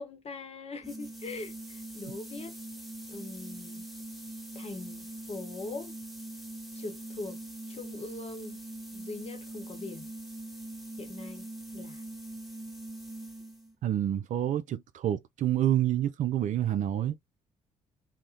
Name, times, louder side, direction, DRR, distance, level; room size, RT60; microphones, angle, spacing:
voice 1, 0.0-2.5 3.1-3.8 4.5-5.9 6.7-7.4 7.7-8.6 8.9-10.1 11.0-11.5 11.7-12.0, left 3 dB, 35° left, 1.0 m, -41 dB
sound 1, 0.8-13.8, right 1 dB, ahead, 1.0 m, -42 dB
voice 2, 13.8-17.2, right 11 dB, 50° right, 0.4 m, -28 dB
2.4 x 2.1 x 2.8 m
figure-of-eight pair, 45°, 17 cm